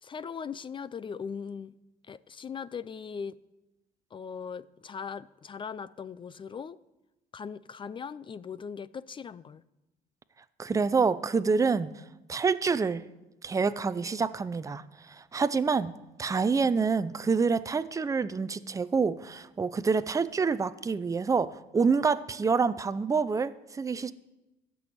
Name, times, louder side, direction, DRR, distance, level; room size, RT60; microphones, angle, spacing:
voice 1, 0.0-1.7 2.1-3.4 4.1-6.8 7.3-9.6, left 6 dB, 30° left, 0.4 m, -39 dB
voice 2, 10.6-11.9 12.3-13.0 13.4-15.9 16.2-24.1, right 5 dB, 20° right, 0.5 m, -27 dB
13.5 x 6.3 x 7.9 m
cardioid pair, 110°, 17 cm